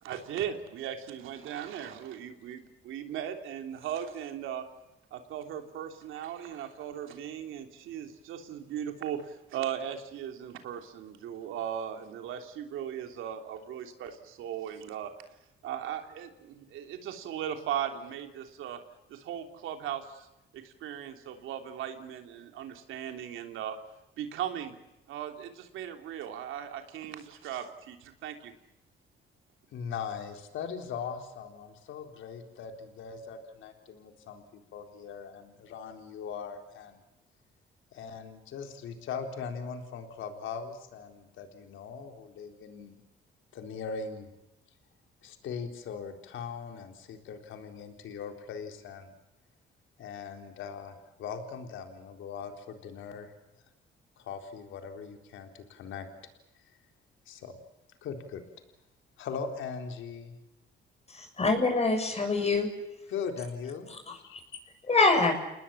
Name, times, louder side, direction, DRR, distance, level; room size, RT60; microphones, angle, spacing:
voice 1, 0.0-4.6 5.1-15.1 15.6-18.8 19.1-20.3 20.5-23.8 24.2-24.8 25.1-28.5, right 9 dB, 85° right, 6 dB, 3.2 m, -38 dB
voice 2, 29.7-37.0 37.9-42.9 43.5-44.3 45.2-49.1 50.0-53.3 54.2-56.1 57.3-57.5 58.0-58.4 59.2-60.4 63.1-64.0 64.2-64.4, left 6 dB, 80° left, 5 dB, 4.0 m, -40 dB
voice 3, 61.1-62.7 64.9-65.3, left 3 dB, 30° left, 4 dB, 6.8 m, -24 dB
29.5 x 20.0 x 7.2 m, 0.94 s
cardioid pair, 90°, 20 cm